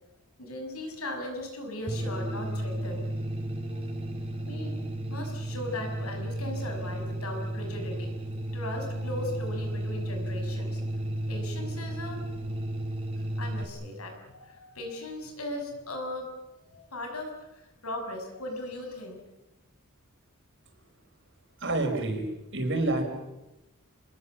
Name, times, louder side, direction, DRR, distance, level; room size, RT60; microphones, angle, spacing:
voice 1, 0.4-3.1 4.4-4.7 5.1-8.2 8.5-10.8 11.3-12.2 13.4-16.3 16.6-19.2, left 1 dB, 85° left, 4 dB, 6.4 m, -38 dB
sound 1, 1.9-13.6, right 1 dB, 25° right, 3.9 m, -33 dB
voice 2, 21.6-22.2 22.5-23.0, right 2 dB, 55° right, 4 dB, 5.4 m, -27 dB
27.5 x 21.0 x 7.4 m, 0.97 s
head